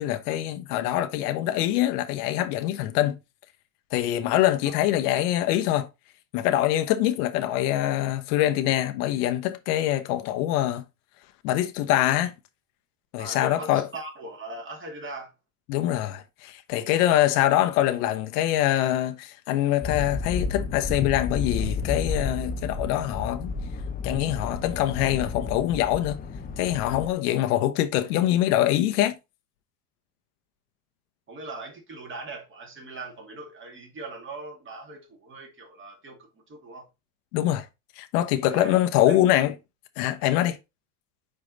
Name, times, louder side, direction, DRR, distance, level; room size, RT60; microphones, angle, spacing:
voice 1, 0.0-3.2 3.9-5.9 6.3-10.8 11.4-12.3 13.1-13.8 15.7-23.5 24.0-26.2 26.6-29.2 37.3-37.7 38.0-39.5 40.0-40.6, left 13 dB, 70° left, 1.0 m, -24 dB
voice 2, 13.2-15.3 17.0-17.2 31.3-36.9 38.5-38.8 39.1-39.2, right 2 dB, 25° right, 2.3 m, -40 dB
sound 1, 19.8-27.1, left 4 dB, 20° left, 0.6 m, -31 dB
5.3 x 4.7 x 3.9 m
supercardioid pair, 130°, 47 cm